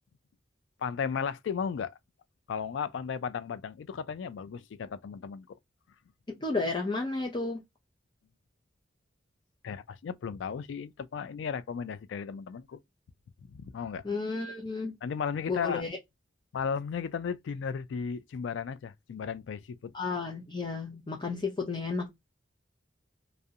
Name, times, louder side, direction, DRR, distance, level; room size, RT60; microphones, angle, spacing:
voice 1, 0.8-1.9 2.5-5.6 9.6-12.8 13.5-14.0 15.0-15.8 16.5-19.9, left 6 dB, 85° left, 0.3 m, -35 dB
voice 2, 6.4-7.6 14.0-14.9 15.5-16.0 19.9-22.1, left 3 dB, 25° left, 0.5 m, -32 dB
2.4 x 2.0 x 2.7 m
head